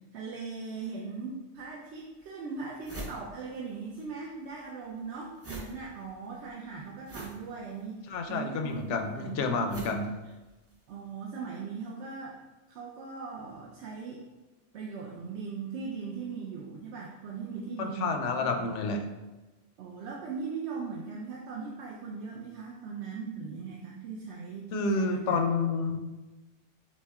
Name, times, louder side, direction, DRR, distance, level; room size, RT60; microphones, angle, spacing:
voice 1, 0.1-9.9 10.9-12.4 12.7-14.2 14.7-18.5 18.8-19.0 19.8-25.4, right 5 dB, 70° right, -2 dB, 0.9 m, -39 dB
sound 1, 1.6-1.7 2.2-2.3 2.5-4.1 4.3-10.9, right 2 dB, 15° right, 0.5 m, -45 dB
voice 2, 8.1-10.1 17.8-19.0 24.7-26.0, left 4 dB, 80° left, 5 dB, 0.9 m, -29 dB
6.2 x 2.2 x 3.5 m, 1.2 s
omnidirectional pair, 1.2 m